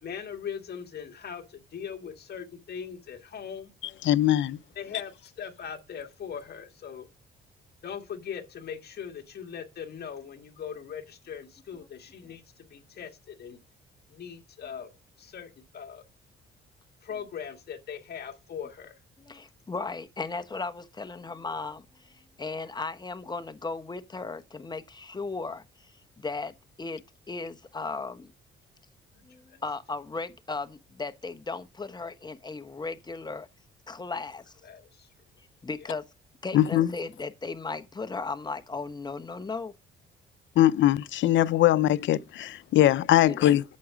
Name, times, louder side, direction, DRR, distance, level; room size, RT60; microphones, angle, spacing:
voice 1, 0.0-3.7 4.8-7.1 7.8-13.6 14.1-14.9 15.2-16.0 17.0-19.0 29.1-29.2 29.5-29.6 34.6-35.1 35.8-35.9, left 7 dB, 55° left, 2.0 m, -40 dB
voice 2, 4.0-4.6 36.5-36.9 40.6-43.6, left 13 dB, 70° left, 0.6 m, -21 dB
voice 3, 19.2-27.0 27.3-28.3 29.2-33.5 33.9-34.4 35.6-36.0 36.4-39.7 43.2-43.5, left 3 dB, 20° left, 1.0 m, -36 dB
8.5 x 7.0 x 5.0 m
cardioid pair, 90°, 20 cm